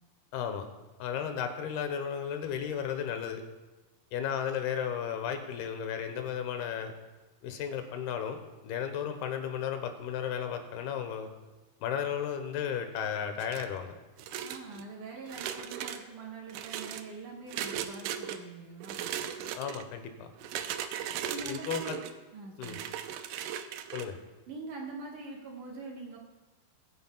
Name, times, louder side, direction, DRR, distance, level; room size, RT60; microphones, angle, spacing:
voice 1, 0.3-0.7 1.0-3.4 4.1-6.9 7.4-11.3 11.8-13.9 19.6-20.3 21.4-22.0 22.6-22.8 23.9-24.2, left 8 dB, 90° left, 7 dB, 2.9 m, -34 dB
sound 1, 13.4-13.8 14.2-14.8 15.3-16.0 16.5-17.0 17.5-18.4 18.8-19.8 20.4-22.1 22.6-24.1, right 9 dB, 90° right, 1.8 m, -37 dB
voice 2, 14.4-19.1 21.3-22.1 22.3-22.9 24.5-26.2, right 3 dB, 65° right, 0 dB, 2.5 m, -43 dB
22.5 x 9.9 x 2.3 m, 1.2 s
omnidirectional pair, 4.4 m